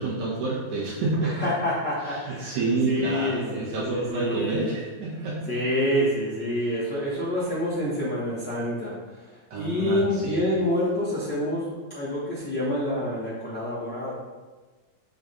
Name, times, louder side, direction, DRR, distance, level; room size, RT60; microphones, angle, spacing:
voice 1, 0.0-1.5 2.1-5.6 9.5-10.4, right 3 dB, 60° right, -5 dB, 2.8 m, -28 dB
voice 2, 1.2-2.6 2.9-4.7 5.5-9.0 9.3-14.1, left 1 dB, 40° left, -9 dB, 1.7 m, -27 dB
7.2 x 4.5 x 5.5 m, 1.3 s
omnidirectional pair, 4.1 m